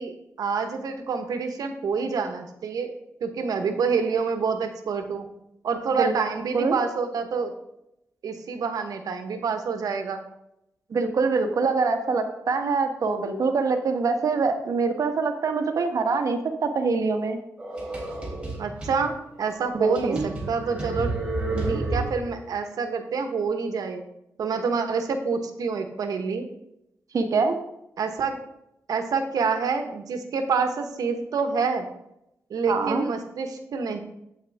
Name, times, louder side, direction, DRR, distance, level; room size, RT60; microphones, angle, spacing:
voice 1, 0.0-2.9 3.2-5.3 5.6-7.5 8.2-10.2 18.6-21.1 21.7-24.0 24.4-26.5 28.0-28.4 28.9-31.9 32.5-34.0, right 5 dB, 85° right, 7 dB, 1.2 m, -27 dB
voice 2, 10.9-17.4 19.7-20.2 21.5-21.8 27.1-27.6 32.7-33.0, right 4 dB, 65° right, 6 dB, 1.2 m, -24 dB
sound 1, 17.6-19.0 19.5-19.6 20.0-22.4, right 2 dB, 20° right, 3.4 m, -30 dB
8.8 x 8.2 x 3.5 m, 0.83 s
cardioid pair, 95°, 6 cm